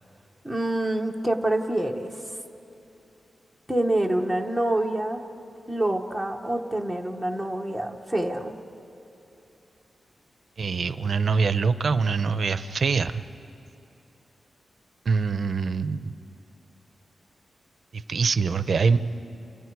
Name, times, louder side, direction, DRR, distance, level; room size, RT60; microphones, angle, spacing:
voice 1, 0.4-2.1 3.7-5.2 5.7-8.5, right 1 dB, 5° left, 3 dB, 1.1 m, -26 dB
voice 2, 10.6-13.2 15.1-16.1 17.9-19.0, right 5 dB, 50° right, 12 dB, 0.7 m, -24 dB
29.5 x 29.0 x 4.8 m, 2.8 s
wide cardioid pair, 165°, 0 cm